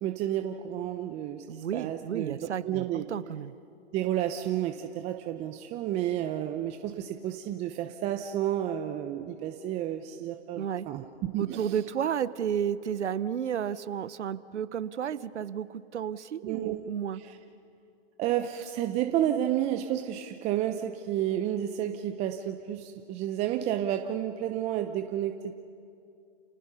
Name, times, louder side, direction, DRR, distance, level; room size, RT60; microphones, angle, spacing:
voice 1, 0.0-3.1 3.9-11.8 16.4-16.8 17.2-17.4 18.2-25.5, right 11 dB, 20° right, 6 dB, 0.7 m, -31 dB
voice 2, 1.5-3.5 10.6-10.9 11.4-17.2, right 9 dB, 80° right, 15 dB, 0.9 m, -32 dB
30.0 x 19.0 x 5.6 m, 2.5 s
hypercardioid pair, 135°, 34 cm